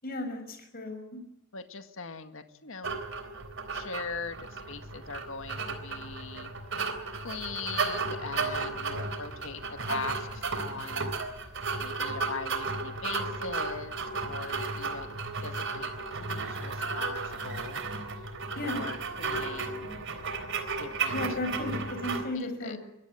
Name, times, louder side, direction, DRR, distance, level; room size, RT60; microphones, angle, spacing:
voice 1, 0.0-1.2 18.6-18.9 21.1-22.8, left 1 dB, 45° left, 5 dB, 5.8 m, -34 dB
voice 2, 1.5-3.0 3.7-6.5 7.2-11.1 11.8-13.9 14.2-17.8 18.6-19.9 20.8-21.2 22.3-22.8, left 4 dB, 70° left, 8 dB, 1.9 m, -41 dB
sound 1, 2.8-22.2, right 4 dB, 65° right, 3.6 m, -34 dB
23.5 x 16.0 x 9.0 m, 0.90 s
head